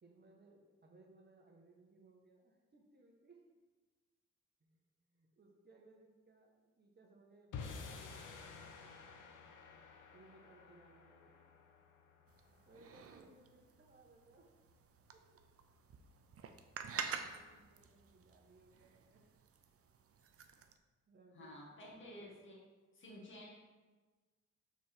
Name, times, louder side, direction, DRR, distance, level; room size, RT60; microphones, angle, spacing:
voice 1, 0.0-3.4 4.6-8.6 10.1-11.4 12.4-14.5 15.1-15.4 17.0-19.3 21.1-21.6, right 2 dB, 35° right, 1 dB, 1.4 m, -65 dB
sound 1, 7.5-13.9, left 5 dB, 85° left, 1.0 m, -52 dB
sound 2, 12.3-20.7, right 6 dB, 50° right, 0.7 m, -49 dB
voice 2, 21.3-22.6 22.9-23.5, left 1 dB, 40° left, -4 dB, 1.9 m, -52 dB
5.9 x 4.4 x 6.0 m, 1.3 s
cardioid pair, 90°, 30 cm